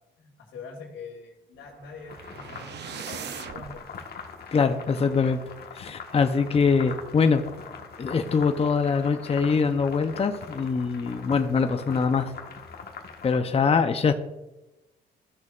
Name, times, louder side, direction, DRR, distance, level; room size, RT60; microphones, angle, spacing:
voice 1, 0.2-3.9, left 4 dB, 85° left, -6 dB, 2.2 m, -44 dB
sound 1, 1.6-3.8, right 9 dB, 60° right, 0.6 m, -40 dB
sound 2, 2.1-13.4, left 5 dB, 50° left, 1.4 m, -42 dB
voice 2, 4.5-5.4 5.7-7.5 8.0-12.3 13.2-14.1, left 5 dB, 30° left, 7 dB, 0.7 m, -23 dB
15.0 x 6.4 x 2.5 m, 1.0 s
cardioid pair, 90°, 20 cm